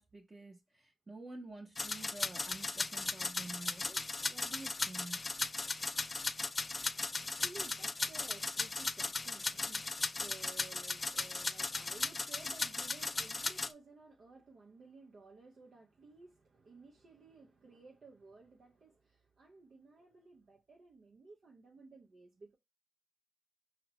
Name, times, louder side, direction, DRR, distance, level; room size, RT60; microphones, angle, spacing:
voice 1, 0.0-5.2, right 2 dB, 35° right, 0.9 m, -50 dB
sound 1, 1.8-13.7, left 3 dB, 35° left, 0.3 m, -37 dB
voice 2, 6.6-22.6, right 3 dB, 60° right, 0.6 m, -56 dB
4.9 x 2.0 x 2.8 m
supercardioid pair, 50°, 0 cm